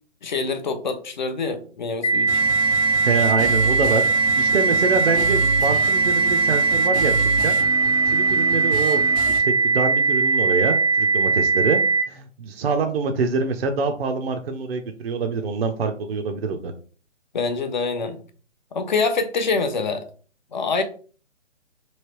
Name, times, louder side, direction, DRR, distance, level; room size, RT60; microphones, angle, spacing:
voice 1, 0.2-2.3 17.3-18.2 18.7-20.0 20.5-20.8, left 4 dB, 40° left, 8 dB, 0.5 m, -25 dB
sound 1, 2.0-12.0, right 4 dB, 70° left, 0.9 m, -20 dB
sound 2, 2.3-9.4, right 1 dB, 5° right, 0.6 m, -31 dB
voice 2, 3.0-4.0 4.4-7.6 8.1-11.8 12.1-16.7, right 4 dB, 55° right, 5 dB, 0.5 m, -25 dB
3.1 x 2.8 x 2.9 m, 0.41 s
hypercardioid pair, 155°, 37 cm